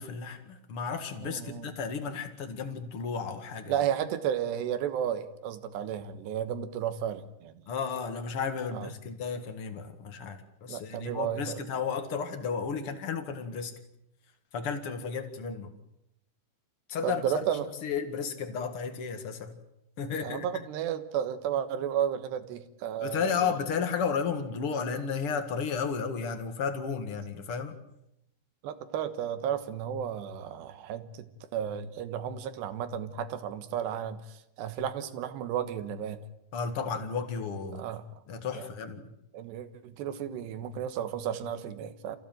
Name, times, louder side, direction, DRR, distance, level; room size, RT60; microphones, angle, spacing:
voice 1, 0.0-3.7 7.7-13.7 14.5-15.7 16.9-17.2 17.8-19.6 20.0-20.5 23.0-27.8 36.5-37.8 38.3-39.1, left 6 dB, 60° left, 6 dB, 1.5 m, -33 dB
voice 2, 1.2-1.7 3.7-7.6 8.7-8.9 10.7-11.6 17.0-17.7 20.2-23.6 28.6-31.3 31.5-36.2 37.7-38.0 38.5-38.7 39.3-42.2, right 9 dB, 70° right, 12 dB, 3.2 m, -33 dB
27.5 x 16.0 x 9.1 m, 0.83 s
omnidirectional pair, 5.7 m